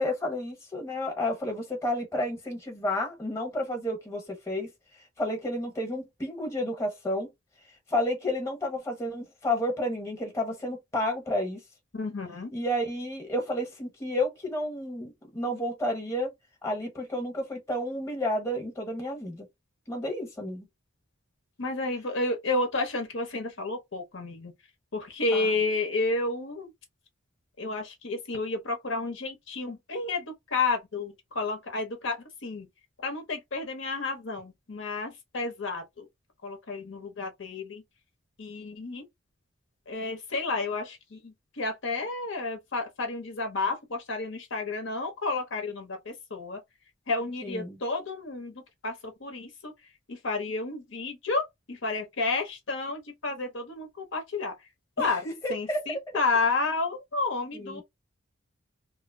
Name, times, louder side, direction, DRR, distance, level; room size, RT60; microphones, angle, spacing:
voice 1, 0.0-4.7 5.2-7.3 7.9-11.6 12.5-16.3 16.6-19.4 19.9-20.7 25.3-25.6 47.4-47.8 55.0-56.0 57.5-57.8, left 1 dB, 15° left, 1.0 m, -31 dB
voice 2, 11.9-12.5 21.6-24.5 24.9-26.7 27.6-30.3 30.5-32.2 32.4-32.7 33.0-36.0 36.4-37.8 38.4-39.0 39.9-46.6 47.1-48.9 49.2-49.7 50.1-51.4 51.7-54.5 55.0-55.2 55.5-57.8, left 3 dB, 60° left, 0.8 m, -31 dB
2.8 x 2.0 x 2.6 m
head